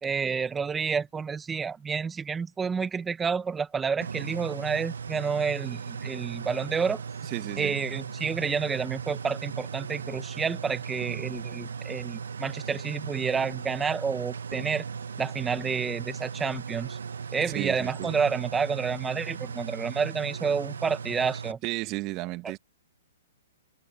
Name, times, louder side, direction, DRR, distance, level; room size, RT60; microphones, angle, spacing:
voice 1, 0.0-7.0 7.6-14.8 15.2-17.0 17.3-21.6 22.4-22.5, right 6 dB, 10° right, 1.7 m, -29 dB
sound 1, 4.0-21.5, right 6 dB, 80° right, 1.2 m, -37 dB
voice 2, 7.2-7.7 17.5-18.1 21.6-22.6, right 21 dB, 35° right, 2.4 m, -33 dB
hypercardioid pair, 135°, 0 cm